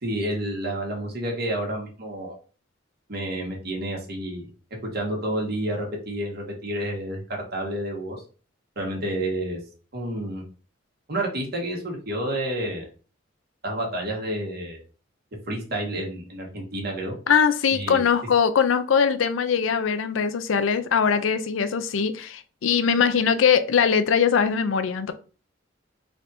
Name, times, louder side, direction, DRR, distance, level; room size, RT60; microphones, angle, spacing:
voice 1, 0.0-2.3 3.1-4.5 4.9-8.2 8.7-9.6 9.9-10.4 11.1-12.9 13.6-14.8 15.5-17.1 17.7-18.0, right 1 dB, 55° right, 1.4 m, -29 dB
voice 2, 17.3-25.1, left 6 dB, 90° left, 0.4 m, -21 dB
3.3 x 2.6 x 4.2 m
head